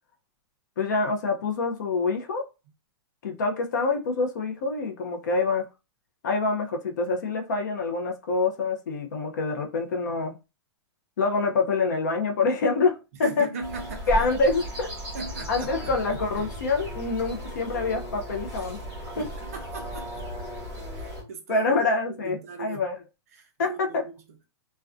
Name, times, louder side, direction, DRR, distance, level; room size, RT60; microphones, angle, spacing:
voice 1, 0.8-2.4 3.2-5.7 6.2-10.4 11.2-13.5 14.1-14.9 15.5-18.8 19.2-19.3 21.5-22.9 23.6-24.0, left 3 dB, 40° left, 0.4 m, -26 dB
voice 2, 13.2-14.5 15.1-16.4 19.1-20.1 20.9-22.9 23.3-24.1, right 4 dB, 35° right, 0.4 m, -39 dB
sound 1, 13.6-21.2, equal, 10° right, 1.0 m, -36 dB
2.4 x 2.1 x 2.4 m
hypercardioid pair, 180°, 14 cm